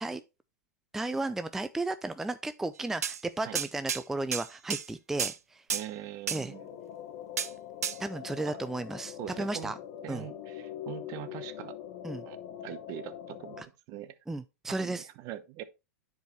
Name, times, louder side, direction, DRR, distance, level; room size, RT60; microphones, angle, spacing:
voice 1, 0.9-5.6 6.3-6.5 8.0-9.7 10.1-10.3 12.0-12.2 13.6-13.7 14.3-15.1, right 2 dB, 5° right, 0.3 m, -34 dB
sound 1, 3.0-3.2 3.6-4.0 4.3-4.9 5.2-5.4 5.7-5.9 6.3-6.4 7.4-7.5 7.8-8.0, right 8 dB, 85° right, 0.5 m, -31 dB
voice 2, 5.7-6.7 8.5-8.6 9.2-9.7 10.0-11.8 12.2-12.4 12.6-14.1 14.7-15.6, right 13 dB, 45° right, 0.8 m, -42 dB
sound 2, 6.5-13.6, left 10 dB, 50° left, 1.1 m, -43 dB
10.5 x 4.7 x 3.0 m
hypercardioid pair, 105°, 8 cm